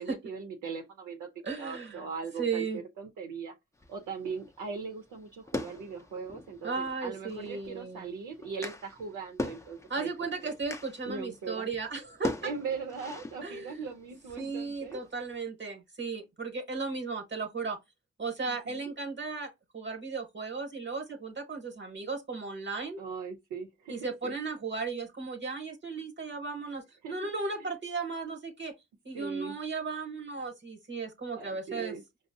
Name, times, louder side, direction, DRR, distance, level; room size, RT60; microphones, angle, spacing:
voice 1, 0.0-1.3 1.6-3.5 3.9-10.1 10.4-10.5 11.1-11.7 12.4-15.0 18.5-18.9 23.0-24.3 27.0-27.1 27.6-27.7 29.1-29.6 31.3-32.0, right 5 dB, 90° right, 0.6 m, -40 dB
voice 2, 1.4-2.0 2.4-2.8 6.6-8.0 9.9-12.5 13.4-13.9 14.4-17.8 18.2-23.0 23.9-28.7 29.0-31.9, right 4 dB, 40° right, 1.0 m, -35 dB
sound 1, 3.7-15.4, left 2 dB, 10° left, 0.5 m, -42 dB
5.1 x 2.0 x 2.6 m
supercardioid pair, 55°, 30 cm